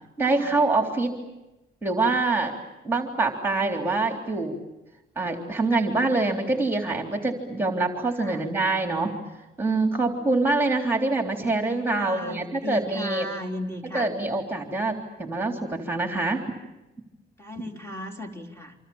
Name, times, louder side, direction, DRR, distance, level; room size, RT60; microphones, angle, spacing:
voice 1, 0.2-1.1 1.8-2.5 2.8-4.5 5.2-9.1 9.6-13.3 13.9-14.9 15.2-16.4, right 3 dB, 10° right, 3 dB, 3.6 m, -25 dB
voice 2, 11.9-14.1 17.4-18.8, equal, 15° left, 3 dB, 4.3 m, -36 dB
27.0 x 27.0 x 7.2 m, 0.98 s
cardioid pair, 90°, 20 cm